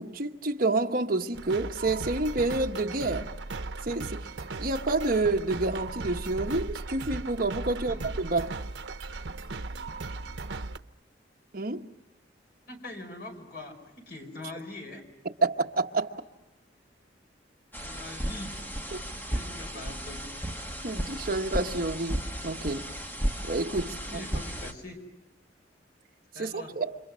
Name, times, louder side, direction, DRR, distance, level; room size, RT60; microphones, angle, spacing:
voice 1, 0.0-3.3 3.8-4.3 4.6-8.5 11.5-11.8 15.4-16.1 18.9-19.0 20.8-22.8 23.4-24.2 26.4-26.9, right 2 dB, 50° right, 1.2 m, -29 dB
sound 1, 1.3-10.8, right 3 dB, 80° right, 0.9 m, -37 dB
voice 2, 7.7-8.1 12.7-15.0 17.8-18.6 19.3-20.3 23.9-25.0 26.3-26.7, left 2 dB, 60° left, 5.2 m, -43 dB
sound 2, 17.7-24.7, equal, 10° left, 2.0 m, -34 dB
29.5 x 26.5 x 6.3 m
head